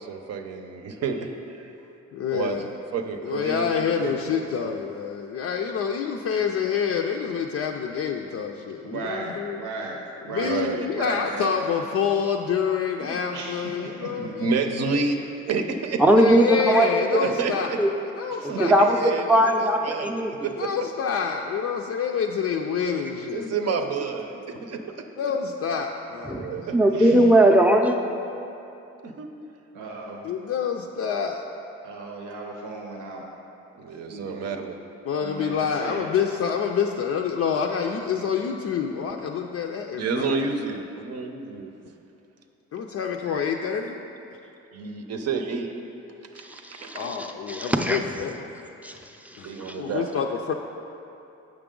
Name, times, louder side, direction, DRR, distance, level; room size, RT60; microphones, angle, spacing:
voice 1, 0.0-1.7 2.3-3.7 4.0-4.8 9.2-9.3 10.4-10.9 13.0-13.2 14.1-16.0 17.1-17.8 18.6-19.5 19.8-20.7 22.7-22.8 23.3-25.0 26.4-26.8 29.0-29.3 33.7-34.8 40.0-41.7 44.7-45.7 46.3-47.1 49.4-50.1, right 4 dB, 55° right, 5 dB, 0.7 m, -30 dB
voice 2, 2.1-2.7 3.2-9.6 10.3-14.5 14.8-15.1 16.2-17.7 18.1-18.7 20.6-23.8 24.3-24.4 25.2-26.7 30.2-31.4 35.0-40.5 42.7-44.0 46.9-48.5 49.4-49.5 49.7-50.5, left 7 dB, 55° left, 1 dB, 0.4 m, -27 dB
voice 3, 8.8-9.3 9.6-10.0 10.3-10.6 10.9-11.5 13.3-14.1 18.4-18.6 26.9-27.2 29.7-30.2 31.8-33.2 34.1-34.6 35.2-36.1, right 3 dB, 85° right, 0 dB, 0.8 m, -35 dB
voice 4, 16.0-17.0 17.8-17.9 18.4-20.5 26.2-28.0 46.4-48.0 48.8-49.9, right 1 dB, 5° right, 3 dB, 0.5 m, -20 dB
7.5 x 6.0 x 3.7 m, 2.8 s
cardioid pair, 90°, 30 cm